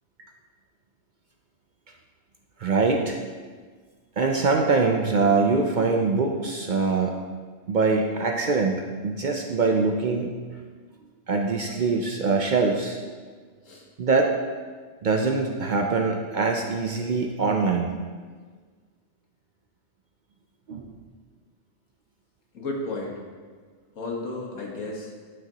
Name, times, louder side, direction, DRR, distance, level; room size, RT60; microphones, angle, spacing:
voice 1, 2.6-3.2 4.2-7.2 7.7-8.8 9.0-10.3 11.3-13.0 14.0-14.4 15.0-17.9 20.7-20.9, right 4 dB, 60° right, 2 dB, 0.5 m, -23 dB
voice 2, 22.5-23.1 23.9-25.1, left 2 dB, 75° left, -2 dB, 1.7 m, -33 dB
10.5 x 6.2 x 2.9 m, 1.5 s
omnidirectional pair, 1.4 m